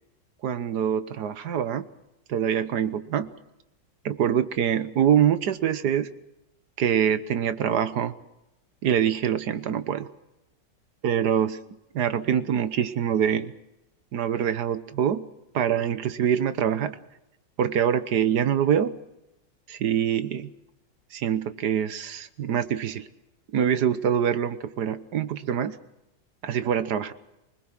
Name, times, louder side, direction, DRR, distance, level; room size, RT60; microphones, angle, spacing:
voice 1, 0.4-1.9 2.3-3.3 4.0-6.1 6.8-8.1 8.8-10.1 11.0-13.5 14.1-15.3 15.5-17.0 17.6-19.0 19.7-20.5 21.1-23.1 23.5-25.8 26.4-27.1, right 9 dB, 65° right, 13 dB, 1.6 m, -25 dB
24.5 x 20.5 x 6.1 m, 0.91 s
omnidirectional pair, 1.9 m